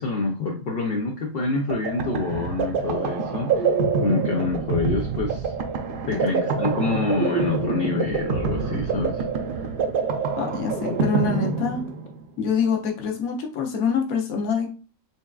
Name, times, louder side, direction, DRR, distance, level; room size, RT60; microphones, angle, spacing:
voice 1, 0.0-3.7 4.0-5.5 6.1-9.2, left 3 dB, 60° left, 1 dB, 0.6 m, -27 dB
sound 1, 1.4-12.3, right 4 dB, 60° right, 0.6 m, -26 dB
voice 2, 10.4-11.9 12.4-14.7, left 6 dB, 85° left, 2 dB, 1.1 m, -25 dB
5.2 x 2.4 x 2.3 m, 0.37 s
omnidirectional pair, 1.5 m